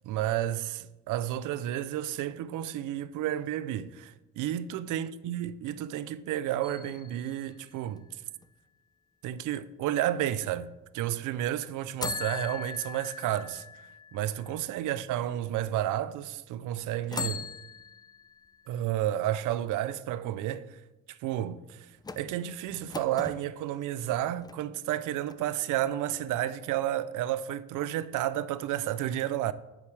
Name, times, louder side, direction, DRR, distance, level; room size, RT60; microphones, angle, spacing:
voice 1, 0.0-8.0 9.2-13.6 14.1-17.5 18.7-20.8 21.1-21.9 22.2-29.5, right 12 dB, 80° right, 0.5 m, -31 dB
sound 1, 6.6-8.5 12.0-15.1 15.7-15.8 17.0-18.8 22.0-23.4 24.1-25.0 25.3-25.4, left 5 dB, 15° left, 0.4 m, -40 dB
9.5 x 6.9 x 3.3 m
cardioid pair, 90°, 30 cm